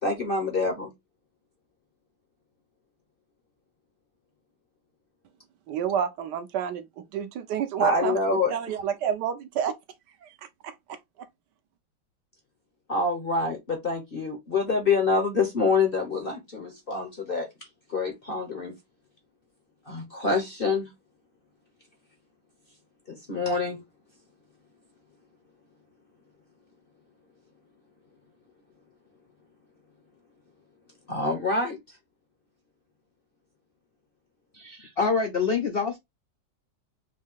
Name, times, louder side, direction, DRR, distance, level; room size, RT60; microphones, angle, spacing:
voice 1, 0.0-0.9 7.8-8.5 12.9-17.5 17.9-18.7 19.9-20.9 23.1-23.8 31.1-31.8, left 3 dB, 45° left, 0.8 m, -26 dB
voice 2, 5.7-9.8 10.2-10.3 10.6-11.0, right 8 dB, 70° right, 1.2 m, -30 dB
voice 3, 34.5-36.0, left 5 dB, 80° left, 0.5 m, -26 dB
4.1 x 2.7 x 3.6 m
omnidirectional pair, 2.0 m